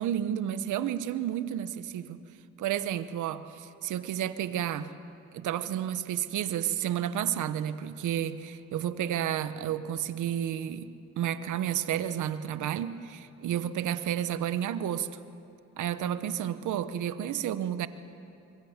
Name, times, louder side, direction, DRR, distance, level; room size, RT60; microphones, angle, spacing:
voice 1, 0.0-2.2 2.6-4.9 5.3-10.9 11.2-15.1 15.8-17.9, right 10 dB, 80° right, 1.1 m, -31 dB
26.0 x 23.0 x 7.4 m
cardioid pair, 90°, 30 cm